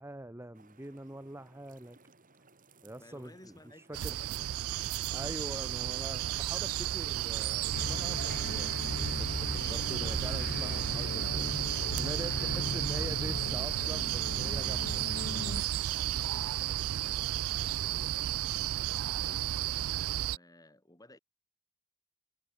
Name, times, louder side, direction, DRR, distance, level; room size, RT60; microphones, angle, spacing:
voice 1, 0.0-2.0 2.8-4.2 5.1-8.9 9.2-11.4 11.9-15.0, right 1 dB, 10° right, 1.0 m, -44 dB
sound 1, 0.5-16.2, right 3 dB, 40° right, 7.8 m, -63 dB
voice 2, 3.0-4.6 12.1-14.0 15.9-19.5 20.1-21.2, left 1 dB, 15° left, 4.5 m, -57 dB
sound 2, 3.9-20.4, right 12 dB, 75° right, 0.4 m, -33 dB
sound 3, 7.7-15.6, left 3 dB, 45° left, 0.7 m, -38 dB
head